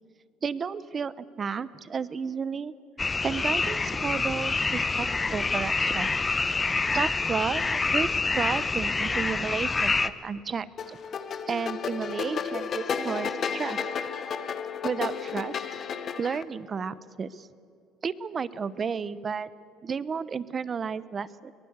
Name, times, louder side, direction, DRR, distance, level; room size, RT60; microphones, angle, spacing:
voice 1, 0.4-2.7 3.2-6.1 6.9-7.6 7.9-11.0 11.5-13.8 14.8-15.5 16.2-17.5 18.0-19.5 19.8-21.5, right 6 dB, 35° right, 17 dB, 0.8 m, -32 dB
sound 1, 3.0-10.1, left 3 dB, 20° left, 0.9 m, -27 dB
sound 2, 10.8-16.4, left 6 dB, 45° left, 1.2 m, -32 dB
23.0 x 19.5 x 8.1 m, 2.4 s
supercardioid pair, 100°, 0 cm